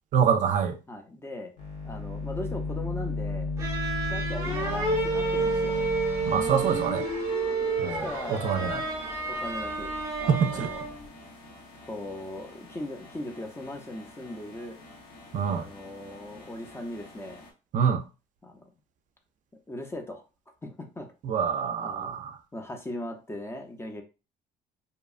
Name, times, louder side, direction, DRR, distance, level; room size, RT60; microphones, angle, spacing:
voice 1, 0.1-0.8 6.3-7.1 7.8-8.8 10.3-10.7 15.3-15.7 17.7-18.0 21.2-22.3, right 7 dB, 50° right, 0.4 m, -26 dB
voice 2, 0.9-1.5 1.8-3.5 4.1-5.8 7.8-8.7 9.3-10.8 11.8-14.8 15.5-17.4 18.4-18.7 19.7-20.2 20.6-21.1 21.8-22.2 22.5-24.0, left 1 dB, 15° left, 0.5 m, -39 dB
sound 1, 1.6-6.9, left 3 dB, 45° left, 1.1 m, -34 dB
sound 2, 3.6-11.1, right 3 dB, 20° right, 0.8 m, -30 dB
sound 3, 4.4-17.5, left 3 dB, 65° left, 0.8 m, -42 dB
2.8 x 2.2 x 2.4 m
cardioid pair, 110°, 17 cm